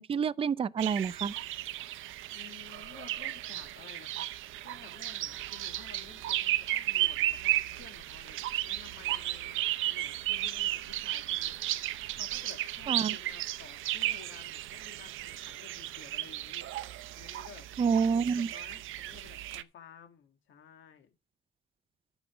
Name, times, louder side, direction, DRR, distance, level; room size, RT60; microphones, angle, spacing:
voice 1, 0.0-1.3 12.9-13.1 17.8-18.5, right 6 dB, 30° right, 0.4 m, -28 dB
sound 1, 0.8-19.6, right 14 dB, 85° right, 0.6 m, -34 dB
voice 2, 2.3-17.7 18.1-21.1, left 8 dB, 75° left, 2.1 m, -54 dB
10.0 x 7.2 x 5.0 m
cardioid pair, 90°, 20 cm